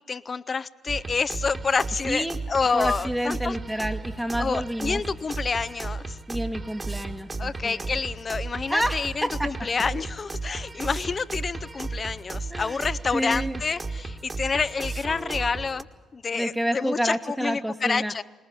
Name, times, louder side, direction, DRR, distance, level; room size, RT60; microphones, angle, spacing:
voice 1, 0.1-3.6 4.4-6.2 7.4-15.9 16.1-18.2, left 5 dB, 40° left, 18 dB, 0.7 m, -28 dB
sound 1, 0.9-15.8, right 3 dB, 30° right, 1.7 m, -34 dB
voice 2, 2.1-2.4 2.7-5.0 6.3-7.9 8.7-9.7 12.5-12.8 13.1-13.6 16.3-18.1, equal, 5° right, 3 dB, 1.2 m, -29 dB
20.5 x 20.5 x 8.5 m, 1.3 s
figure-of-eight pair, 40°, 0 cm